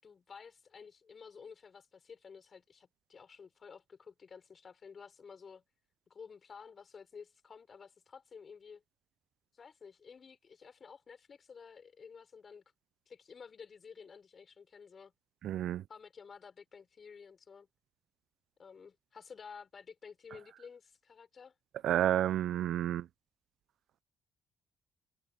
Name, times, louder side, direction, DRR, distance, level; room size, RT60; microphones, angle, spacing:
voice 1, 0.0-5.6 6.1-8.8 9.5-12.6 13.1-15.1 15.9-17.7 18.6-21.5, left 6 dB, 45° left, 5.7 m, -52 dB
voice 2, 15.4-15.8 21.8-23.1, right 11 dB, 75° right, 0.4 m, -30 dB
cardioid pair, 90°, 0 cm